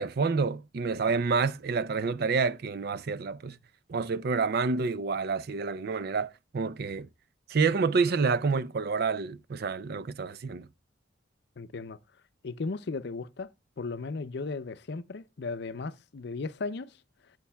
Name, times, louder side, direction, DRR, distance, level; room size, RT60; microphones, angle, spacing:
voice 1, 0.0-3.6 3.9-7.1 7.5-10.7, right 4 dB, 55° right, 0.4 m, -28 dB
voice 2, 11.6-12.0 12.4-13.5 13.8-17.0, left 3 dB, 60° left, 0.5 m, -36 dB
12.5 x 8.2 x 2.3 m
head